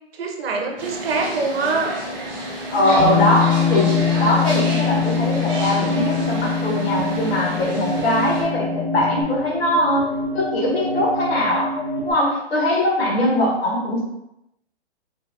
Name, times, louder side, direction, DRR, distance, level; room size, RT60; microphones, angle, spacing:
voice 1, 0.1-1.9 7.9-8.2, right 4 dB, 60° right, 2 dB, 0.8 m, -24 dB
sound 1, 0.8-8.4, right 1 dB, 15° right, 0.6 m, -30 dB
sound 2, 2.7-12.1, equal, 85° left, 1.2 m, -28 dB
voice 2, 2.7-10.1 10.3-11.7 12.0-14.0, left 1 dB, 65° left, -2 dB, 1.3 m, -21 dB
Bass guitar, 3.0-9.2, left 9 dB, 10° left, 0.8 m, -24 dB
4.0 x 2.6 x 2.6 m, 0.86 s
hypercardioid pair, 135°, 33 cm